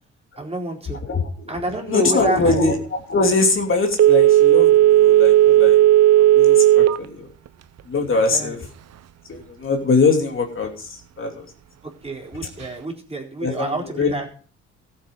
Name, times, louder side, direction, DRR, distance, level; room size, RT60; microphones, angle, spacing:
voice 1, 0.4-1.0 1.5-2.8 8.1-8.5 12.0-14.3, right 2 dB, 20° right, 0 dB, 4.2 m, -28 dB
voice 2, 1.0-1.6 1.9-2.8 3.1-5.8 6.2-7.3 7.9-8.6 9.3-11.5 13.4-14.2, left 3 dB, 45° left, 2 dB, 3.1 m, -22 dB
Telephone, 3.9-7.1 7.5-7.6, right 13 dB, 55° right, 0.9 m, -13 dB
14.5 x 8.5 x 5.5 m, 0.42 s
cardioid pair, 90°, 30 cm